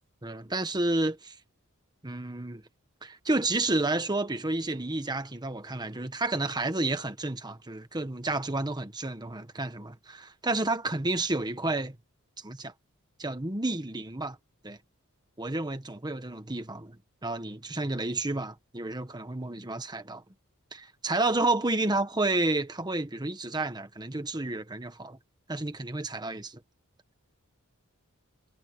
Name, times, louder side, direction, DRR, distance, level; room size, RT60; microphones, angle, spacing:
voice 1, 0.2-1.3 2.0-2.6 3.0-12.0 12.4-12.7 13.2-14.4 14.6-14.8 15.4-20.2 20.7-25.2 25.5-26.6, right 2 dB, 20° right, 1.4 m, -30 dB
head